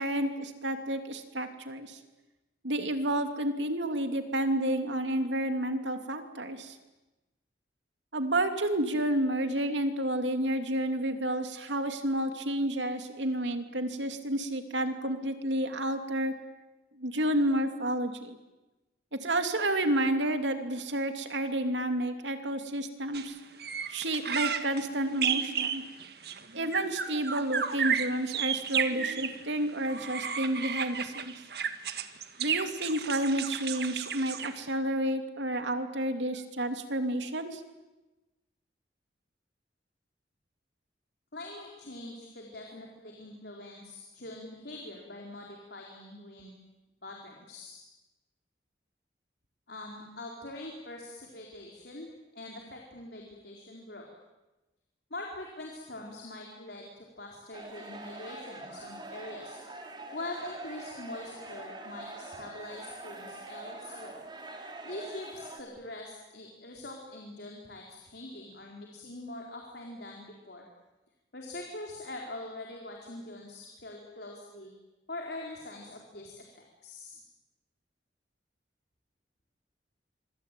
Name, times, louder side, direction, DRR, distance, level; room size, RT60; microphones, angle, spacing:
voice 1, 0.0-2.0 2.6-6.8 8.1-16.3 17.0-18.4 19.2-23.4 23.9-25.8 26.5-31.3 32.4-37.6, right 1 dB, 85° right, 7 dB, 2.9 m, -30 dB
sound 1, 23.1-23.3 23.6-29.4 29.9-34.7, right 7 dB, 60° right, 1.7 m, -33 dB
voice 2, 41.3-46.5 47.0-47.8 49.7-54.1 55.1-59.6 60.1-64.2 64.8-70.7 71.3-74.7 75.1-77.2, left 2 dB, 65° left, 0 dB, 4.3 m, -43 dB
sound 2, 57.5-65.6, right 2 dB, 25° right, 3.8 m, -44 dB
25.5 x 25.5 x 9.2 m, 1.1 s
head